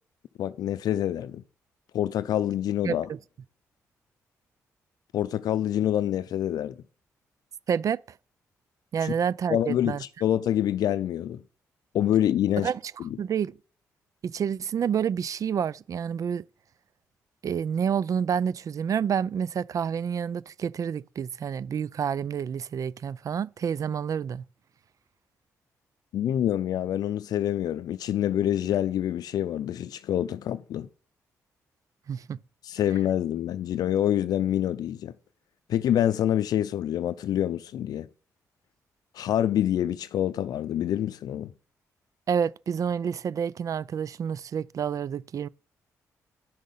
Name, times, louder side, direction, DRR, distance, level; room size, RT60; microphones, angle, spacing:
voice 1, 0.4-1.4 1.9-3.1 5.1-6.7 9.0-9.1 9.5-11.4 11.9-12.7 13.0-13.1 26.1-30.9 32.6-35.1 35.7-38.1 39.1-41.5, left 11 dB, 75° left, 0.5 m, -26 dB
voice 2, 2.8-3.2 7.7-8.0 8.9-10.0 12.6-12.8 13.2-13.5 14.2-16.4 17.4-24.4 32.1-32.4 42.3-45.5, right 7 dB, 55° right, 0.4 m, -28 dB
10.0 x 6.4 x 5.5 m
supercardioid pair, 60°, 7 cm